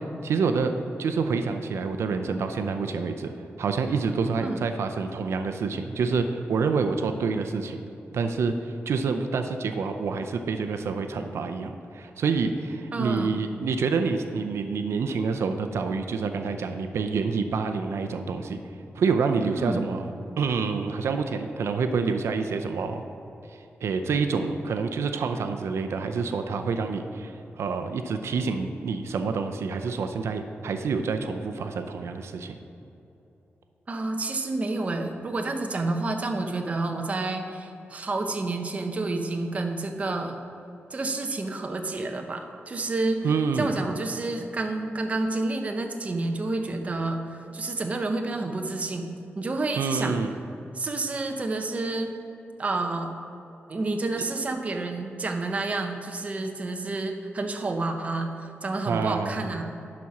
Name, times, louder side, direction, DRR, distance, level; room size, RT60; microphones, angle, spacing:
voice 1, 0.2-0.7 1.0-3.3 3.6-7.8 8.1-18.6 18.9-20.1 20.4-23.0 23.8-32.6 43.2-43.7 49.8-50.3 54.1-54.2 58.9-59.4, right 5 dB, 90° right, 7 dB, 0.5 m, -27 dB
voice 2, 12.9-13.5 19.6-19.9 33.9-40.4 40.9-43.3 43.6-49.0 49.3-50.2 50.7-52.1 52.6-53.1 53.7-59.6, right 2 dB, 30° right, 4 dB, 0.7 m, -29 dB
11.0 x 4.2 x 5.9 m, 2.9 s
wide cardioid pair, 165°, 4 cm